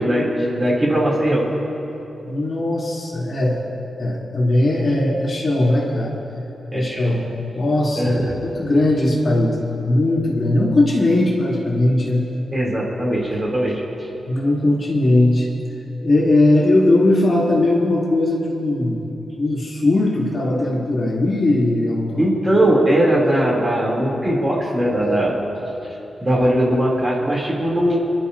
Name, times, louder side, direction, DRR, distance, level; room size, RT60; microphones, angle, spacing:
voice 1, 0.0-1.5 6.7-7.2 8.0-8.3 12.5-13.8 22.2-25.4 26.2-28.0, right 1 dB, 20° right, -4 dB, 3.2 m, -19 dB
voice 2, 2.2-3.6 4.0-6.1 6.7-7.2 7.5-12.2 14.3-15.5 16.0-19.0 19.4-22.2, left 1 dB, 40° left, -6 dB, 3.3 m, -19 dB
29.0 x 12.0 x 2.8 m, 2.9 s
wide cardioid pair, 145°, 0 cm